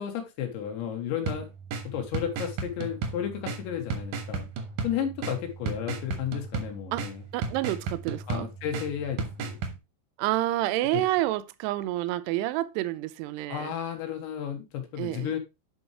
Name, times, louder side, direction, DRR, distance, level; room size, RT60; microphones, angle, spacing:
voice 1, 0.0-1.5 1.9-4.5 4.8-7.2 8.3-9.6 10.9-11.0 13.5-15.4, left 9 dB, 80° left, 3.6 m, -33 dB
sound 1, 1.2-9.8, right 4 dB, 70° right, 2.1 m, -35 dB
voice 2, 7.3-8.5 10.2-13.7 15.0-15.4, right 16 dB, 85° right, 2.5 m, -29 dB
10.0 x 5.5 x 3.3 m
omnidirectional pair, 5.2 m